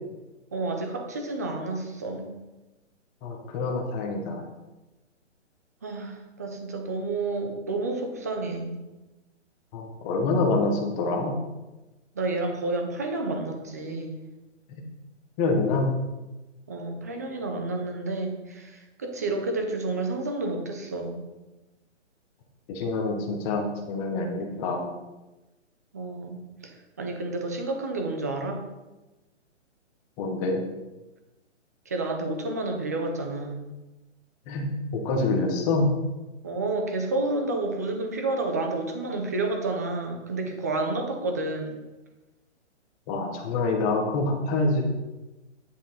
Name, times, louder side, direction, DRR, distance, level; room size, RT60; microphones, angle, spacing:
voice 1, 0.5-2.4 5.8-8.8 12.2-14.2 16.7-21.2 25.9-26.4 27.0-28.6 31.9-33.7 36.4-41.8, right 2 dB, 15° right, 3 dB, 0.5 m, -30 dB
voice 2, 3.2-4.4 9.7-11.4 14.7-14.8 15.4-15.9 22.7-24.9 30.2-30.6 34.5-35.9 43.1-44.8, left 3 dB, 15° left, 1 dB, 1.0 m, -26 dB
10.0 x 5.7 x 4.3 m, 1.1 s
hypercardioid pair, 160°, 36 cm